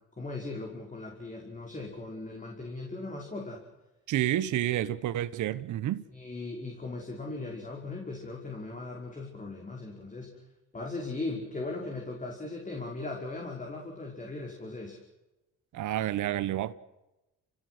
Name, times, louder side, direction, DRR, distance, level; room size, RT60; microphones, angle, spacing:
voice 1, 0.2-3.6 6.1-10.4 10.7-15.0, left 2 dB, 25° left, 5.3 m, -38 dB
voice 2, 4.1-6.0 15.7-16.7, right 13 dB, 75° right, 1.1 m, -29 dB
29.5 x 17.5 x 8.0 m
cardioid pair, 90°, 30 cm